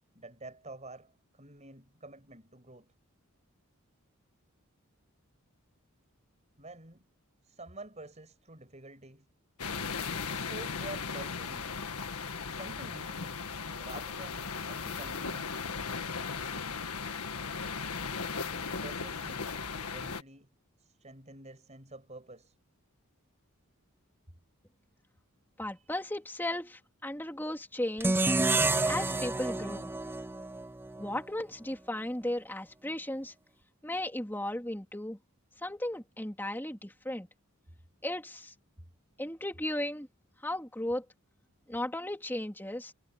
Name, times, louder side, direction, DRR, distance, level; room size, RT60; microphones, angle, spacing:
voice 1, 0.1-2.9 6.6-7.0 7.4-9.3 10.3-11.8 12.5-13.4 13.8-15.5 18.5-20.5 20.8-22.5 25.7-25.9, right 2 dB, 30° right, 5.9 m, -48 dB
sound 1, 9.6-20.2, left 5 dB, 85° left, 1.7 m, -37 dB
voice 2, 25.6-28.2 28.8-29.9 31.0-33.3 33.8-35.2 35.6-37.3 38.0-38.5 39.2-40.1 40.4-41.0 41.7-42.9, left 1 dB, 10° left, 3.2 m, -35 dB
sound 2, 28.0-31.2, right 2 dB, 10° right, 0.4 m, -29 dB
head